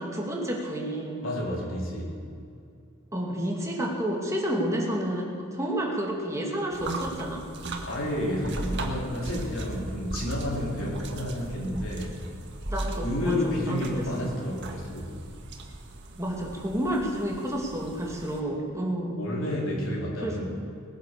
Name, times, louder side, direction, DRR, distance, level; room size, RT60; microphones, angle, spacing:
voice 1, 0.0-1.2 3.1-7.4 12.7-14.1 16.2-19.2 20.2-20.4, right 1 dB, 15° right, -1 dB, 2.5 m, -30 dB
voice 2, 1.2-2.1 7.8-12.1 13.0-15.1 19.2-20.4, left 1 dB, 65° left, -3 dB, 4.2 m, -30 dB
sound 1, 6.7-18.4, right 2 dB, 55° right, 1.6 m, -37 dB
20.0 x 10.0 x 6.9 m, 2.4 s
head